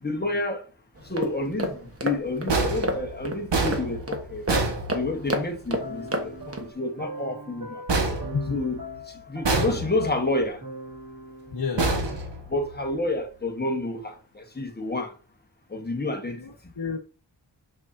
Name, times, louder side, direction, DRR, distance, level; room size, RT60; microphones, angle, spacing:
voice 1, 0.0-0.7 1.0-4.4 4.9-7.8 8.5-8.8 9.3-10.6 12.5-15.1 15.7-16.4, left 2 dB, 25° left, 1.3 m, -29 dB
sound 1, 1.0-6.7, equal, 35° right, 1.4 m, -32 dB
sound 2, 2.5-5.5 7.9-9.0 9.4-10.3 11.8-12.9, right 2 dB, 75° right, 1.5 m, -27 dB
sound 3, 5.8-12.2, equal, 55° right, 1.4 m, -41 dB
voice 2, 11.5-12.2 16.4-17.0, left 5 dB, 60° left, 1.2 m, -31 dB
6.5 x 6.3 x 2.7 m
wide cardioid pair, 95°, 42 cm